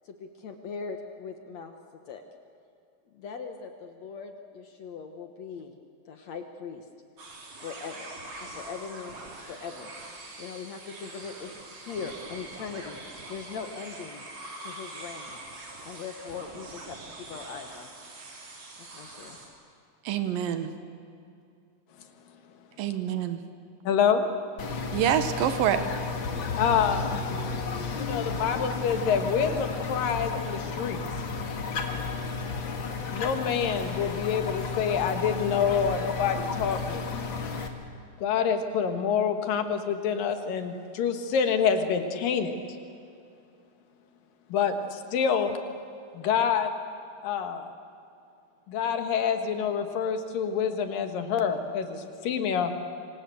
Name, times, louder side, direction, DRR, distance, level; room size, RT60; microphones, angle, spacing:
voice 1, 0.1-1.7 2.1-2.2 3.1-5.8 6.1-6.8 7.6-9.1 9.5-9.9 10.4-13.0 13.3-14.3 14.6-15.4 15.8-17.9 18.9-19.4, left 5 dB, 60° left, 6 dB, 2.2 m, -40 dB
sound 1, 7.2-19.5, right 2 dB, 60° right, 5.0 m, -44 dB
voice 2, 20.1-20.7 22.8-23.4 24.9-25.8, right 10 dB, 80° right, 9 dB, 3.0 m, -26 dB
voice 3, 23.8-24.3 26.6-27.4 27.9-31.0 33.1-37.0 38.2-42.5 44.5-45.6 46.1-46.7 47.2-47.7 48.7-52.7, left 7 dB, 75° left, 7 dB, 3.3 m, -27 dB
sound 2, 24.6-37.7, left 4 dB, 40° left, 2.0 m, -33 dB
26.0 x 25.5 x 8.0 m, 2.5 s
omnidirectional pair, 4.0 m